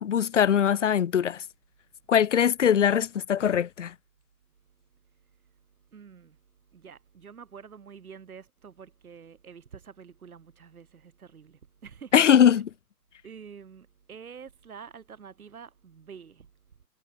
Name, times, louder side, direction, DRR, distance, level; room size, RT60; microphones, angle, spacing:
voice 1, 0.0-1.4 2.1-3.9 12.1-12.7, left 9 dB, 50° left, 0.5 m, -21 dB
voice 2, 5.9-6.4 6.7-12.6 13.2-16.5, right 6 dB, 60° right, 4.5 m, -47 dB
figure-of-eight pair, 125°, 50 cm